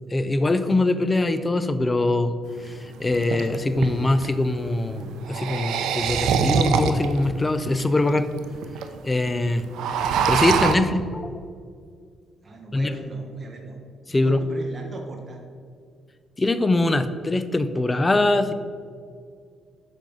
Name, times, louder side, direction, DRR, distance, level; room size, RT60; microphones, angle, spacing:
voice 1, 0.1-2.3 2.6-8.3 9.0-9.6 10.3-11.4 12.7-12.9 14.1-14.4 16.4-18.5, left 2 dB, 20° left, 11 dB, 0.5 m, -22 dB
sound 1, 2.5-2.6 3.1-4.3 5.2-7.2 7.8-7.9 8.1-8.2 8.4-8.8 9.1-9.3 9.6-10.8, right 6 dB, 85° right, 0.6 m, -23 dB
voice 2, 12.4-13.8 14.2-15.4, right 2 dB, 30° right, 0 dB, 1.2 m, -39 dB
7.5 x 5.3 x 5.4 m, 2.1 s
cardioid pair, 90°, 0 cm